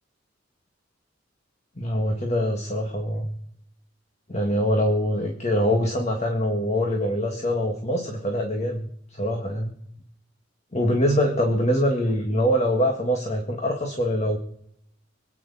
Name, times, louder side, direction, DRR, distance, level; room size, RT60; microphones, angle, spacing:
voice 1, 1.8-3.3 4.3-8.9 9.2-9.7 10.7-14.4, equal, 35° left, 3 dB, 1.8 m, -24 dB
25.5 x 9.3 x 4.2 m, 0.73 s
head